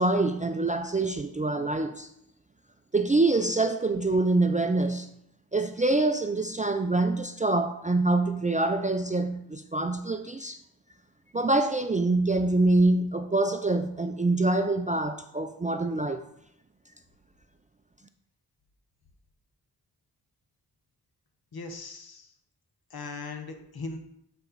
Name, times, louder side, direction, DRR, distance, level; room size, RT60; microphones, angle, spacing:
voice 1, 0.0-2.1 2.9-5.1 5.5-10.6 11.3-16.2, right 2 dB, 20° right, 0.3 m, -25 dB
voice 2, 21.5-22.3 22.9-24.0, left 3 dB, 60° left, 1.1 m, -39 dB
7.8 x 4.2 x 4.0 m
cardioid pair, 60°, 41 cm